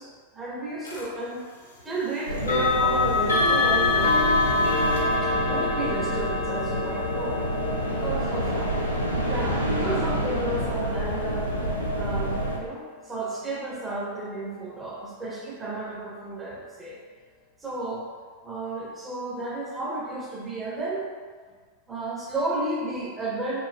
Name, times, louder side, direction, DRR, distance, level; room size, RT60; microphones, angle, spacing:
voice 1, 0.0-1.4 1.8-4.2 5.2-7.4 7.9-8.7 9.2-11.7 11.9-17.0 17.6-18.1 18.4-21.1 21.9-23.6, right 2 dB, 15° right, -3 dB, 0.6 m, -32 dB
sound 1, 0.8-1.1 2.4-13.2, left 3 dB, 70° left, 0.5 m, -27 dB
sound 2, 2.3-12.6, equal, 90° right, 0.4 m, -28 dB
2.9 x 2.5 x 2.4 m, 1.6 s
figure-of-eight pair, 90°, 0 cm